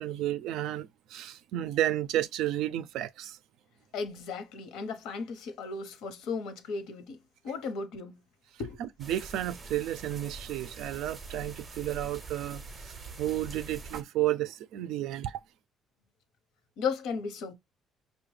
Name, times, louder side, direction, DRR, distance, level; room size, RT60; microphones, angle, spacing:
voice 1, 0.0-3.4 8.8-15.4, right 13 dB, 75° right, 0.4 m, -32 dB
voice 2, 3.9-7.2 7.4-8.2 8.6-8.8 16.8-17.5, left 5 dB, 80° left, 0.9 m, -35 dB
sound 1, 9.0-14.0, right 3 dB, 25° right, 0.5 m, -44 dB
5.6 x 2.2 x 3.2 m
cardioid pair, 160°, 0 cm